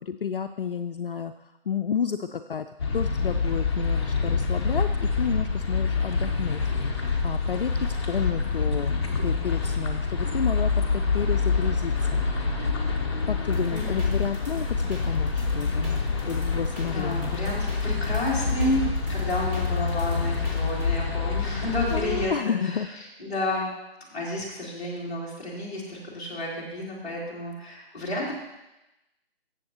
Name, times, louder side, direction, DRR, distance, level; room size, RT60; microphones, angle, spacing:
voice 1, 0.0-6.6 6.9-12.6 13.2-16.0 16.3-17.4 21.9-22.9, left 7 dB, 60° left, 8 dB, 0.4 m, -31 dB
sound 1, 2.8-22.3, left 4 dB, 25° left, 0.9 m, -26 dB
sound 2, 13.5-20.8, right 2 dB, 40° right, 3.7 m, -39 dB
voice 2, 13.7-14.1 16.9-22.8 23.2-23.7 24.0-28.3, left 1 dB, 10° left, -11 dB, 2.3 m, -31 dB
14.5 x 7.2 x 2.8 m, 0.96 s
figure-of-eight pair, 165°, 31 cm